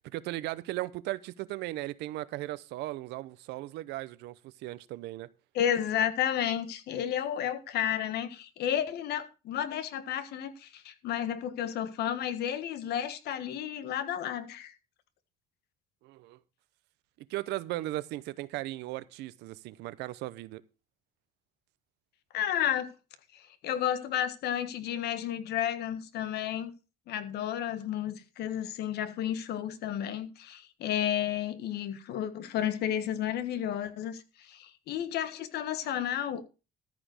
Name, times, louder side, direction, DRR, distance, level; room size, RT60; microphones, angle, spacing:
voice 1, 0.1-5.3 16.0-16.4 17.3-20.6, right 17 dB, 90° right, 0.8 m, -37 dB
voice 2, 5.5-14.7 22.3-22.9 23.3-26.7 27.1-36.4, left 10 dB, 75° left, 1.5 m, -32 dB
13.5 x 5.1 x 6.4 m
cardioid pair, 110°, 17 cm